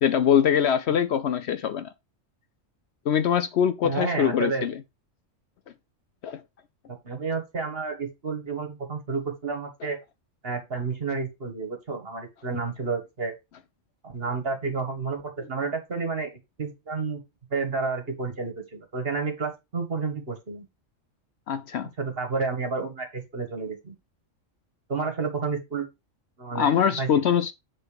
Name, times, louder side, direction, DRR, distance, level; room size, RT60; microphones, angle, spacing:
voice 1, 0.0-1.9 3.1-4.8 6.2-6.4 21.5-21.9 26.5-27.5, left 8 dB, 65° left, 0.8 m, -23 dB
voice 2, 3.8-4.7 6.9-10.0 10.4-13.3 14.0-15.2 15.5-17.2 17.5-20.7 22.0-23.9 24.9-25.9 26.4-27.3, right 4 dB, 50° right, 2.0 m, -30 dB
8.1 x 4.0 x 5.0 m
omnidirectional pair, 1.3 m